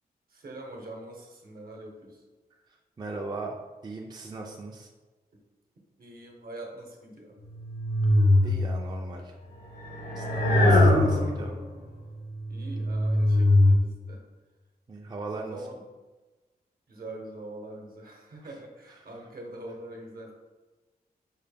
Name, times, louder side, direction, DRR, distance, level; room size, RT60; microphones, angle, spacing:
voice 1, 0.3-2.2 6.0-7.3 11.4-11.6 12.5-14.2 15.3-15.9 16.9-20.3, right 1 dB, 65° right, 0 dB, 0.9 m, -43 dB
voice 2, 3.0-3.6 3.8-4.9 8.1-8.2 8.4-9.4 10.2-11.5 14.9-15.7 18.4-18.6 18.9-19.3, right 3 dB, 25° right, 0 dB, 0.4 m, -39 dB
sound 1, 7.6-9.0 9.8-11.6 12.3-13.8, left 1 dB, 85° left, 0.8 m, -22 dB
5.3 x 2.1 x 3.4 m, 1.2 s
wide cardioid pair, 105°, 16 cm